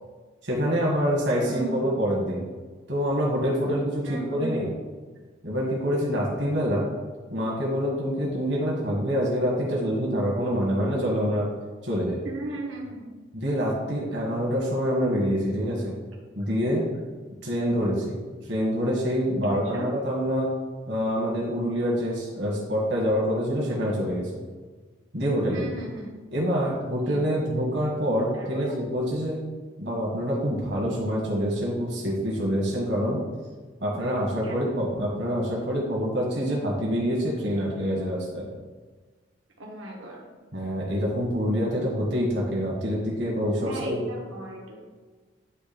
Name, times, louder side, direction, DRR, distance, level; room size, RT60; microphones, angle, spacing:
voice 1, 0.4-2.4 2.9-4.0 4.3-4.7 5.4-6.9 7.3-11.5 11.8-12.2 13.3-15.9 16.4-16.9 17.4-18.2 18.5-20.5 20.9-24.3 25.1-25.7 26.3-29.4 29.8-33.2 33.8-38.5 40.5-44.0, equal, 60° right, -4 dB, 1.6 m, -26 dB
voice 2, 1.4-1.9 4.0-4.6 12.2-13.1 19.7-19.9 25.5-26.1 27.0-27.5 28.3-28.7 34.4-34.7 39.6-40.2 43.6-44.9, right 2 dB, 80° right, -2 dB, 1.4 m, -36 dB
9.4 x 3.2 x 4.3 m, 1.4 s
head